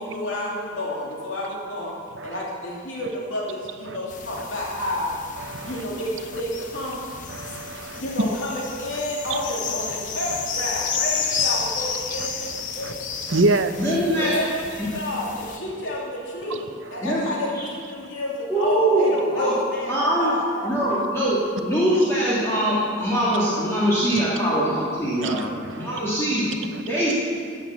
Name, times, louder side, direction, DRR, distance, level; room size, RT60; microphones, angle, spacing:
voice 1, 0.0-1.9 2.2-5.1 5.6-7.0 7.9-13.0 14.1-20.5 26.4-26.9, left 1 dB, 75° left, -4 dB, 3.0 m, -30 dB
sound 1, 4.1-15.6, left 5 dB, 40° left, 1.0 m, -31 dB
voice 2, 5.5-5.8 7.3-8.0 12.8-12.9 13.3-13.9 24.1-24.2 25.2-26.0, right 2 dB, 70° right, 9 dB, 0.8 m, -25 dB
voice 3, 13.8-14.4 14.8-14.9 17.0-17.2 18.5-19.6 19.9-20.4 20.6-25.4 25.8-26.5 26.9-27.1, right 1 dB, 15° left, -10 dB, 2.7 m, -22 dB
14.5 x 8.8 x 7.3 m, 2.3 s
head